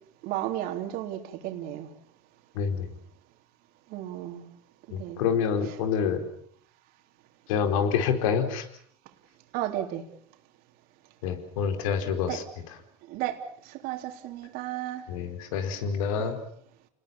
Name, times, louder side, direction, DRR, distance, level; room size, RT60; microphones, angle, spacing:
voice 1, 0.2-1.9 3.9-4.4 5.0-5.2 9.5-10.0 12.3-12.4 13.1-15.1 16.2-16.4, right 13 dB, 60° right, 3.7 m, -33 dB
voice 2, 2.5-2.9 4.9-6.3 7.5-8.7 11.2-12.4 15.1-16.4, left 7 dB, 75° left, 4.4 m, -27 dB
30.0 x 21.0 x 7.3 m
supercardioid pair, 105°, 17 cm